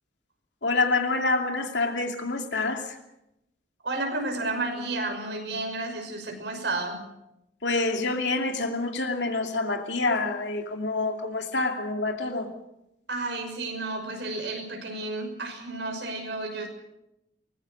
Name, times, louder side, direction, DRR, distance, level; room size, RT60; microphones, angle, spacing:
voice 1, 0.6-3.0 7.6-12.5, left 3 dB, 90° left, 2.6 m, -27 dB
voice 2, 3.8-7.0 13.1-16.7, right 2 dB, 85° right, 6.1 m, -31 dB
23.5 x 20.0 x 6.6 m
head